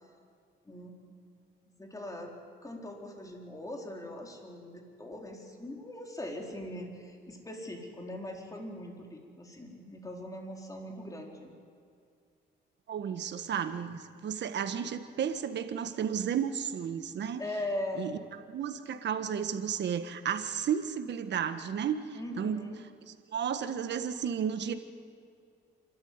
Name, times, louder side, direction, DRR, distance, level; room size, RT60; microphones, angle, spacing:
voice 1, 0.6-1.0 1.8-2.3 2.6-11.5 17.4-18.2 22.1-22.8, left 1 dB, 15° left, 0 dB, 4.3 m, -40 dB
voice 2, 12.9-17.4 18.0-18.1 18.5-22.0 22.4-22.6 23.3-24.7, right 8 dB, 60° right, 9 dB, 1.5 m, -32 dB
27.5 x 13.0 x 9.6 m, 2.3 s
cardioid pair, 90°, 20 cm